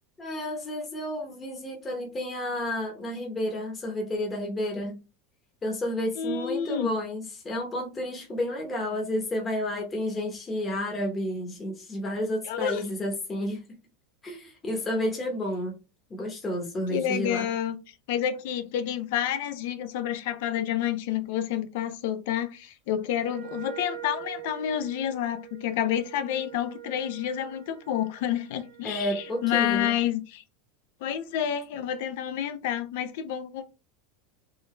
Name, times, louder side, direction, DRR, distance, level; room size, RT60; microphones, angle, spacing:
voice 1, 0.2-5.0 5.6-13.6 14.2-15.7 16.1-17.5 28.8-30.0, left 1 dB, 20° left, 1.0 m, -31 dB
voice 2, 6.2-6.9 12.4-12.8 16.9-17.8 18.1-30.4 31.0-33.6, left 10 dB, 70° left, 0.6 m, -29 dB
Wind instrument woodwind instrument, 23.2-29.8, right 12 dB, 65° right, 0.9 m, -44 dB
3.8 x 2.6 x 3.2 m
supercardioid pair, 140°, 0 cm